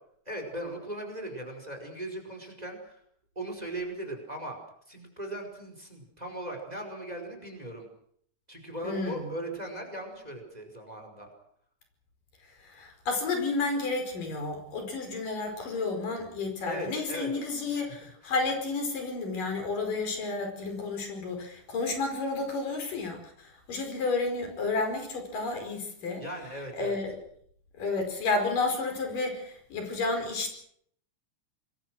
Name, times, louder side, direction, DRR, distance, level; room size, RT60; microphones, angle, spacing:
voice 1, 0.3-3.0 3.4-4.6 4.9-7.9 8.5-11.3 16.7-17.3 17.7-18.0 18.2-18.3 26.2-27.0, right 1 dB, 10° right, 5 dB, 5.1 m, -38 dB
voice 2, 8.8-9.3 12.4-26.2 26.8-27.2 27.8-30.5, left 3 dB, 85° left, 4 dB, 6.6 m, -31 dB
26.5 x 22.0 x 6.3 m, 0.66 s
omnidirectional pair, 3.7 m